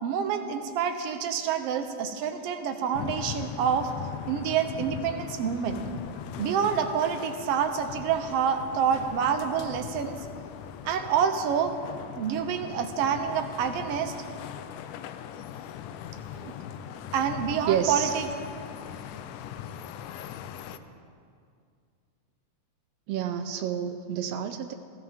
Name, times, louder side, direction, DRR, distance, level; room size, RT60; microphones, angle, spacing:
voice 1, 0.0-3.9 4.3-5.8 6.4-10.2 10.8-11.8 12.2-14.1 16.4-16.5 17.1-18.3, right 7 dB, 65° right, 7 dB, 1.6 m, -27 dB
sound 1, 2.9-20.8, left 9 dB, 85° left, 2.2 m, -40 dB
sound 2, 5.6-10.9, left 5 dB, 70° left, 1.6 m, -48 dB
voice 2, 17.7-18.1 20.7-20.9 23.1-24.7, right 9 dB, 85° right, 8 dB, 1.4 m, -29 dB
20.0 x 16.0 x 3.6 m, 2.3 s
omnidirectional pair, 3.6 m